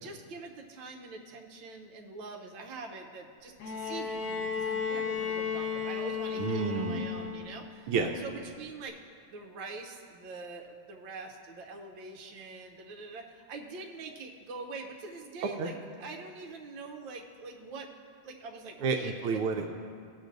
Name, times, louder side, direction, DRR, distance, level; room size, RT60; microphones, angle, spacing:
voice 1, 0.0-8.9 9.3-17.9 18.2-19.1, right 3 dB, 70° right, 1 dB, 1.5 m, -44 dB
Bowed string instrument, 3.6-7.6 8.9-9.0, left 6 dB, 80° left, 1.9 m, -34 dB
voice 2, 6.4-7.0 7.9-8.1 15.6-15.7 18.8-19.7, right 5 dB, 85° right, 3 dB, 1.5 m, -30 dB
18.5 x 6.5 x 2.6 m, 2.2 s
omnidirectional pair, 2.3 m